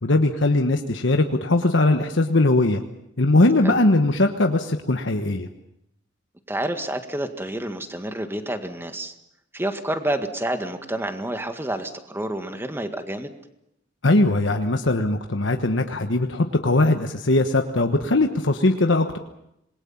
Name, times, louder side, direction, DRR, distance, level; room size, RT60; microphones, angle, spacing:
voice 1, 0.0-2.8 3.2-5.5 14.0-19.2, left 2 dB, 75° left, 5 dB, 1.3 m, -20 dB
voice 2, 6.5-9.1 9.5-13.3, right 1 dB, 15° right, 7 dB, 1.8 m, -29 dB
26.5 x 21.5 x 7.3 m, 0.82 s
head